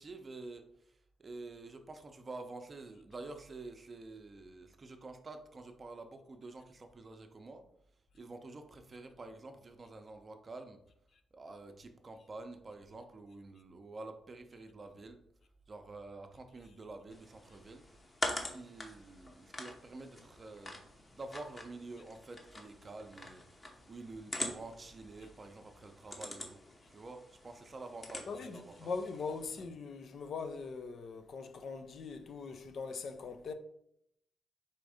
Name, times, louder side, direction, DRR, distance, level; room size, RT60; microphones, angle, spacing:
voice 1, 0.0-7.6 8.1-10.8 11.3-15.2 15.7-17.8 18.3-23.4 23.7-26.6 26.9-28.9, right 3 dB, 35° right, 0.6 m, -48 dB
sound 1, 17.1-29.6, left 2 dB, 30° left, 0.9 m, -45 dB
voice 2, 28.3-33.5, left 4 dB, 60° left, 0.5 m, -41 dB
4.2 x 2.6 x 4.9 m
cardioid pair, 85°, 0 cm